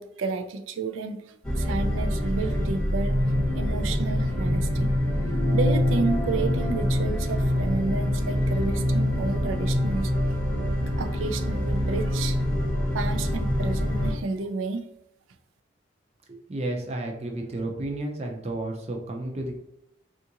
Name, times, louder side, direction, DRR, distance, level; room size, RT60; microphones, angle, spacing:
voice 1, 0.0-3.2 3.5-5.0 5.5-10.1 10.9-12.4 12.9-14.8, right 3 dB, 90° right, 7 dB, 0.4 m, -31 dB
sound 1, 1.4-14.1, equal, 5° left, 0.7 m, -25 dB
sound 2, 5.2-10.0, left 3 dB, 45° left, 0.4 m, -39 dB
voice 2, 16.3-19.6, right 1 dB, 35° right, 2 dB, 0.5 m, -32 dB
3.6 x 2.5 x 2.8 m, 0.82 s
head